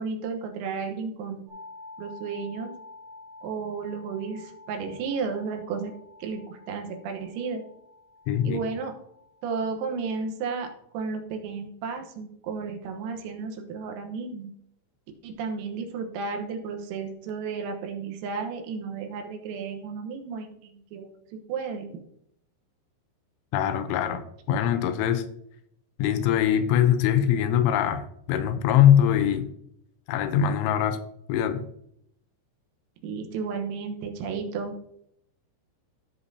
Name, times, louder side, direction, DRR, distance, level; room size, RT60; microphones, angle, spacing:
voice 1, 0.0-1.4 2.0-2.7 3.4-5.9 6.2-7.6 8.4-8.9 9.4-14.5 15.2-21.2 21.5-22.0 33.0-34.8, right 5 dB, 85° right, 3.8 m, -33 dB
sound 1, 1.5-11.2, left 2 dB, 55° right, 2.6 m, -49 dB
voice 2, 8.3-8.6 23.5-25.3 26.0-29.5 30.1-31.0 31.3-31.7, left 9 dB, 85° left, 3.0 m, -22 dB
15.5 x 5.9 x 2.7 m
omnidirectional pair, 5.9 m